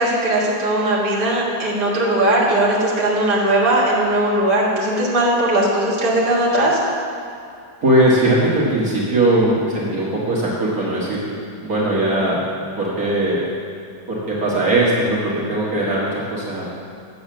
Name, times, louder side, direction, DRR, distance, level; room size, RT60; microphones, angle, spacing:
voice 1, 0.0-6.8, right 1 dB, 30° right, -6 dB, 1.8 m, -18 dB
voice 2, 7.8-11.2 11.6-12.4 12.8-13.4 14.1-16.7, right 1 dB, 55° right, -6 dB, 2.0 m, -19 dB
8.7 x 7.1 x 6.0 m, 2.5 s
omnidirectional pair, 2.0 m